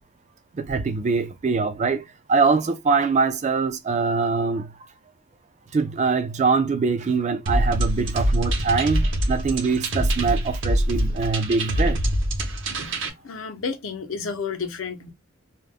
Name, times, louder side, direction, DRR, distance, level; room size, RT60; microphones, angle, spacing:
voice 1, 0.5-4.7 5.7-12.0, right 4 dB, 35° right, 0.3 m, -23 dB
sound 1, 7.5-13.1, right 1 dB, 65° right, 0.7 m, -24 dB
voice 2, 13.2-15.1, left 5 dB, 75° left, 0.6 m, -31 dB
2.3 x 2.0 x 3.3 m
head